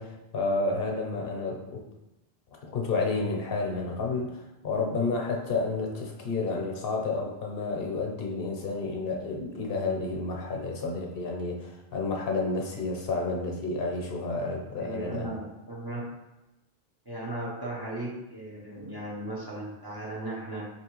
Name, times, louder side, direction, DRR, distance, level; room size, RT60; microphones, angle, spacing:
voice 1, 0.0-1.8 2.6-15.3, left 3 dB, 70° left, 1 dB, 0.8 m, -30 dB
voice 2, 14.8-16.1 17.1-20.7, right 1 dB, 25° right, -5 dB, 0.7 m, -36 dB
4.4 x 2.9 x 3.0 m, 0.98 s
omnidirectional pair, 1.0 m